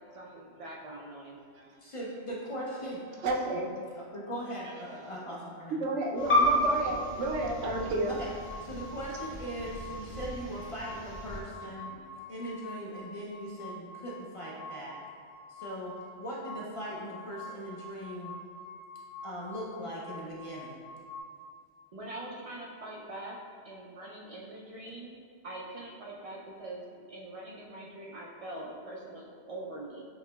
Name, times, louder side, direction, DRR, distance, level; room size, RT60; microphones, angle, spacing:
voice 1, 0.1-1.4 21.9-23.4 23.6-25.1 25.4-30.0, right 1 dB, 60° right, -4 dB, 0.3 m, -43 dB
voice 2, 1.8-3.0 3.9-5.8 8.1-8.3 8.6-11.9 12.3-15.0 15.5-18.3 19.2-20.8, equal, 45° left, -5 dB, 0.4 m, -39 dB
voice 3, 3.2-3.7 5.7-8.1 11.9-12.1, right 2 dB, 80° right, -1 dB, 0.9 m, -31 dB
sound 1, 6.2-21.2, left 1 dB, 85° left, 1.7 m, -47 dB
sound 2, 6.2-11.4, equal, 10° left, 0.7 m, -32 dB
7.0 x 2.9 x 2.2 m, 2.2 s
omnidirectional pair, 1.2 m